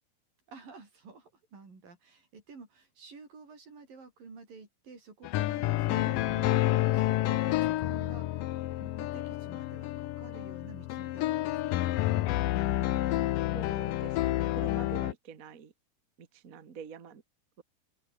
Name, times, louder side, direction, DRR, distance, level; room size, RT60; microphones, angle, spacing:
voice 1, 0.5-11.8, right 4 dB, 55° right, 8.1 m, -51 dB
sound 1, 5.2-15.1, left 15 dB, 70° left, 2.2 m, -29 dB
voice 2, 13.5-15.7 16.2-17.2 17.6-17.7, right 7 dB, 70° right, 0.8 m, -46 dB
open air
omnidirectional pair, 4.8 m